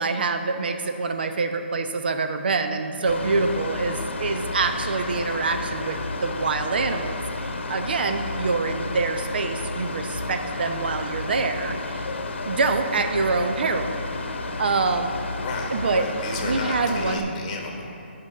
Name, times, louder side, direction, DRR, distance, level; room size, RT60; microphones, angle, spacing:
voice 1, 0.0-12.1 12.4-14.0 14.6-15.2 15.7-16.1 16.4-17.3, right 4 dB, 55° right, 6 dB, 0.7 m, -26 dB
Mechanical fan, 3.1-17.2, left 2 dB, 80° left, 0.9 m, -31 dB
voice 2, 15.3-17.8, left 3 dB, 25° left, 1 dB, 1.3 m, -33 dB
8.6 x 5.7 x 6.6 m, 2.6 s
hypercardioid pair, 165°, 6 cm